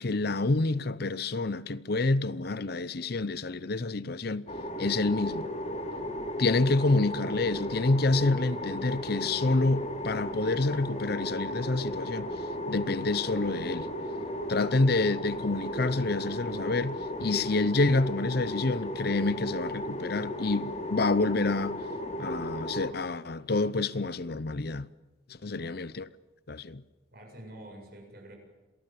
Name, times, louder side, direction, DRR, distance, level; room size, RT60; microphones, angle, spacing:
voice 1, 0.0-4.5 4.8-5.5 6.4-12.3 12.7-13.9 14.5-21.8 22.2-24.9 25.4-26.1 26.5-26.8, left 3 dB, 50° left, 0.7 m, -28 dB
sound 1, 4.5-22.9, left 1 dB, 35° left, 2.9 m, -35 dB
voice 2, 25.5-25.9 27.1-28.4, right 1 dB, 50° right, 7.3 m, -48 dB
27.0 x 19.0 x 7.6 m
head